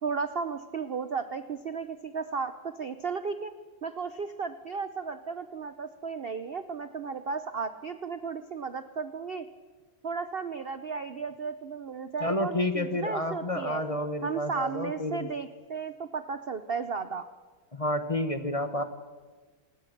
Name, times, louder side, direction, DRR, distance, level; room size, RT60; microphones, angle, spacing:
voice 1, 0.0-3.5 3.8-9.5 10.0-13.8 14.2-17.3, right 5 dB, 65° right, 11 dB, 0.5 m, -34 dB
voice 2, 12.2-15.3 17.7-18.8, left 1 dB, 20° left, 8 dB, 1.1 m, -30 dB
25.5 x 20.0 x 6.6 m, 1.4 s
omnidirectional pair, 2.1 m